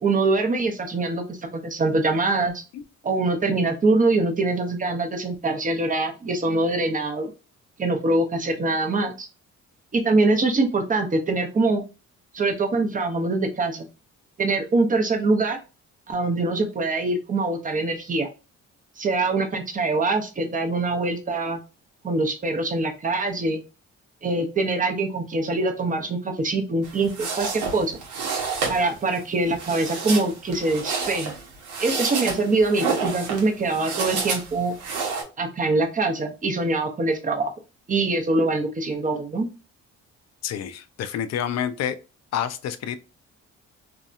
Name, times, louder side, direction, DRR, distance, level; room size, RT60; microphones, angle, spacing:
voice 1, 0.0-2.5 3.0-7.3 7.8-9.3 9.9-11.8 12.3-13.9 14.4-15.6 16.1-18.3 19.0-21.6 22.0-23.6 24.2-28.0 28.7-31.3 31.8-34.8 35.4-37.5 37.9-39.5, right 2 dB, 25° right, 0.6 m, -23 dB
sound 1, 26.8-35.2, right 5 dB, 85° right, 0.9 m, -30 dB
voice 2, 40.4-42.0 42.3-43.0, left 9 dB, 60° left, 0.4 m, -28 dB
2.7 x 2.2 x 2.5 m
cardioid pair, 90°, 30 cm